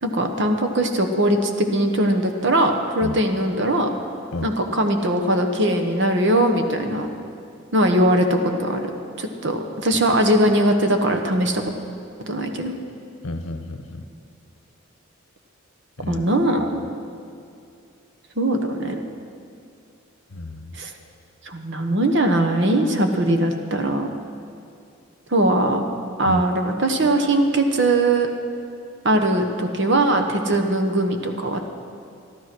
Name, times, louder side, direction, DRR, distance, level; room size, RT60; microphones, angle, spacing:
voice 1, 0.0-3.9 4.4-7.1 7.7-8.8 9.2-11.6 12.3-12.7 16.1-16.8 18.4-19.0 20.8-20.9 21.4-24.1 25.3-25.8 26.2-28.3 29.0-31.6, right 1 dB, 60° right, 5 dB, 1.2 m, -20 dB
voice 2, 13.2-14.1 16.0-16.3 20.3-20.8 26.2-26.4, left 1 dB, 75° left, 8 dB, 0.9 m, -31 dB
13.0 x 12.5 x 6.2 m, 2.5 s
head